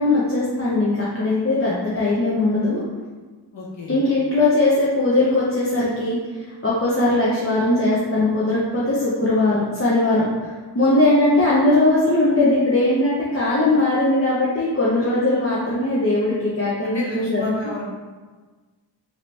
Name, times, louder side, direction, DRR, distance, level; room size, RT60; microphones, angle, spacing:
voice 1, 0.0-2.8 3.9-17.5, left 2 dB, 30° left, -8 dB, 0.8 m, -20 dB
voice 2, 3.5-4.0 16.8-17.8, left 2 dB, 75° left, -4 dB, 1.2 m, -32 dB
5.1 x 3.0 x 3.3 m, 1.4 s
wide cardioid pair, 85°, 45 cm